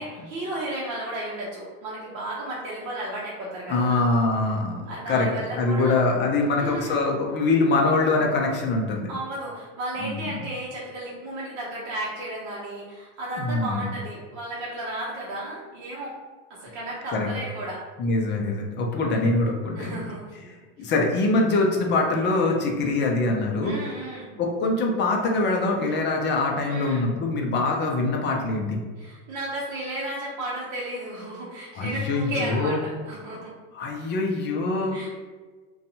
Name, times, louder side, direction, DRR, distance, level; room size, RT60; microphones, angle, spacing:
voice 1, 0.0-4.0 4.8-6.0 6.5-7.0 9.1-16.1 16.5-17.8 19.7-20.5 20.8-20.9 23.6-24.3 26.7-27.0 29.0-33.5 34.9-35.2, right 1 dB, 45° right, -7 dB, 0.8 m, -34 dB
voice 2, 3.7-9.1 10.0-10.3 13.4-13.9 17.1-17.3 18.0-20.1 20.8-23.8 24.4-28.8 31.7-32.8 33.7-35.0, left 3 dB, 30° left, 1 dB, 0.5 m, -24 dB
2.5 x 2.3 x 2.8 m, 1.4 s
hypercardioid pair, 105°, 38 cm